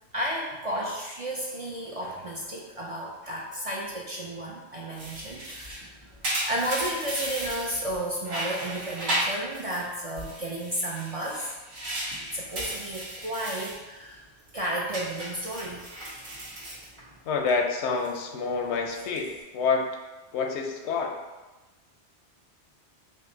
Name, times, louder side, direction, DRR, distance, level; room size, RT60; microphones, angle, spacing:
voice 1, 0.1-6.2 6.4-11.6 12.2-14.2 14.5-15.9, right 1 dB, 50° right, -3 dB, 0.4 m, -33 dB
sound 1, 5.0-8.0 8.3-9.9 10.2-13.8 14.2-14.5 14.9-17.5 17.8-18.2 18.8-19.4, right 1 dB, 75° right, 1.4 m, -35 dB
voice 2, 17.3-19.9 20.3-21.1, left 5 dB, 85° left, 3 dB, 0.9 m, -27 dB
5.2 x 2.1 x 3.8 m, 1.2 s
omnidirectional pair, 1.1 m